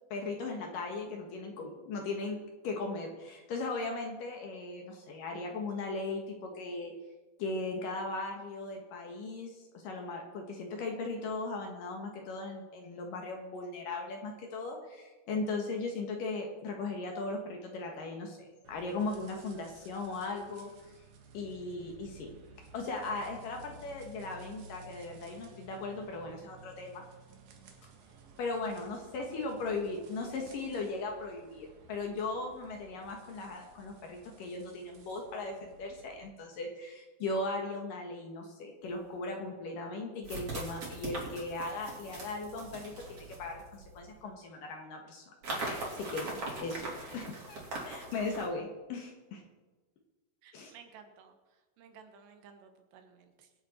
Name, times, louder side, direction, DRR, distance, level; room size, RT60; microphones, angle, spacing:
voice 1, 0.1-2.4 2.6-6.9 7.4-20.7 21.3-22.3 22.7-27.0 28.4-45.2 45.6-47.6 47.8-49.4 50.5-50.7, left 3 dB, 65° left, 2 dB, 2.6 m, -38 dB
sound 1, 18.6-36.3, right 3 dB, 60° right, 2.2 m, -55 dB
sound 2, 38.9-39.0 40.2-44.1 45.4-48.5, right 2 dB, 35° right, 3.9 m, -41 dB
voice 2, 50.4-53.5, right 6 dB, 75° right, 6 dB, 3.4 m, -56 dB
24.5 x 8.4 x 4.4 m, 1.2 s
omnidirectional pair, 5.1 m